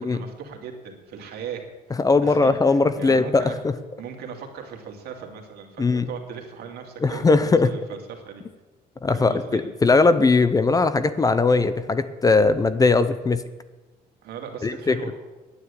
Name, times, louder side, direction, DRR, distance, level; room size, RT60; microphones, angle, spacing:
voice 1, 0.0-1.6 1.9-3.6 4.0-8.4 9.1-9.6 14.2-15.1, right 7 dB, 70° right, 2 dB, 2.3 m, -38 dB
voice 2, 2.0-3.5 5.8-6.1 7.0-7.7 9.0-13.4 14.6-15.1, left 3 dB, 20° left, 13 dB, 0.6 m, -19 dB
9.7 x 9.4 x 8.3 m, 1.2 s
cardioid pair, 110°, 17 cm